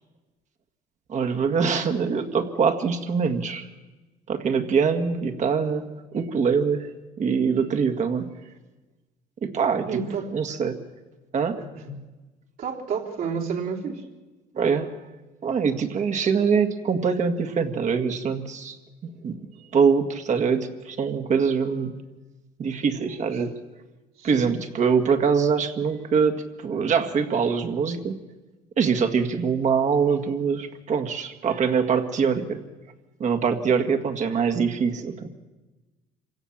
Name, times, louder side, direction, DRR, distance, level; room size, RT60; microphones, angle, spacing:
voice 1, 1.1-3.7 4.3-5.8 6.1-6.9 7.2-8.3 9.4-9.9 10.3-10.8 11.3-11.6 14.5-15.0 15.4-18.8 19.2-19.3 19.7-21.9 22.6-23.5 24.2-26.3 26.6-28.2 28.8-32.6 33.2-35.3, right 6 dB, 45° right, 6 dB, 1.9 m, -23 dB
voice 2, 9.9-10.3 11.6-11.9 12.6-14.0 24.2-24.5, right 6 dB, 65° right, 0 dB, 3.6 m, -30 dB
26.0 x 16.5 x 7.4 m, 1.2 s
cardioid pair, 110°, 17 cm